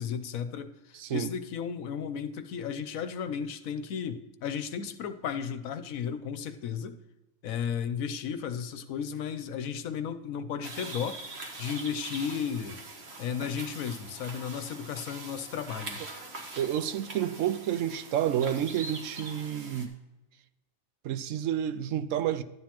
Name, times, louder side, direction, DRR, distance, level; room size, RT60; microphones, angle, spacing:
voice 1, 0.0-7.0 7.4-11.2 11.6-12.8 13.2-16.0, left 7 dB, 70° left, 1.1 m, -34 dB
voice 2, 0.9-1.3 16.6-19.9 21.0-22.4, right 10 dB, 70° right, 0.8 m, -30 dB
sound 1, 10.6-19.9, right 2 dB, 45° right, 1.5 m, -43 dB
12.5 x 9.4 x 2.9 m
omnidirectional pair, 1.6 m